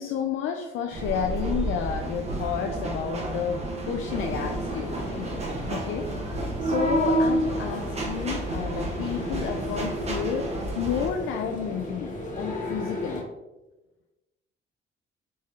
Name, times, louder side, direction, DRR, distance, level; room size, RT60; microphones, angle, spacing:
voice 1, 0.0-6.1 6.6-13.2, left 7 dB, 80° left, 4 dB, 0.4 m, -31 dB
sound 1, 0.9-11.1, right 1 dB, 30° right, 1.1 m, -30 dB
sound 2, 4.1-13.2, left 1 dB, 40° left, 1.2 m, -36 dB
4.4 x 3.1 x 3.3 m, 1.0 s
cardioid pair, 90°, 20 cm